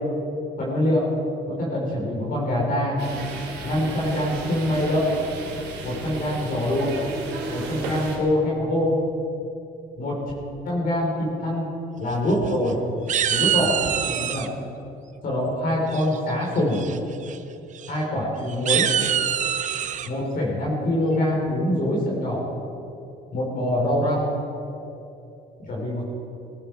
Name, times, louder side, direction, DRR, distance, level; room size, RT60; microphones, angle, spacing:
voice 1, 0.6-1.1 1.5-3.0 3.6-5.1 5.8-6.9 7.5-9.0 10.0-10.2 10.6-11.1 11.4-11.7 12.0-12.8 13.3-14.5 15.2-16.8 17.9-18.8 20.1-22.4 23.3-24.3 25.7-26.0, left 1 dB, 55° left, -3 dB, 4.0 m, -24 dB
sound 1, 3.0-8.2, right 3 dB, 85° right, 3.1 m, -34 dB
sound 2, 12.1-12.7 13.1-14.5 15.9-16.3 16.7-17.0 17.2-17.4 17.8-17.9 18.5-20.1, right 9 dB, 45° right, 0.7 m, -25 dB
18.5 x 14.0 x 4.7 m, 2.8 s
cardioid pair, 110°, 17 cm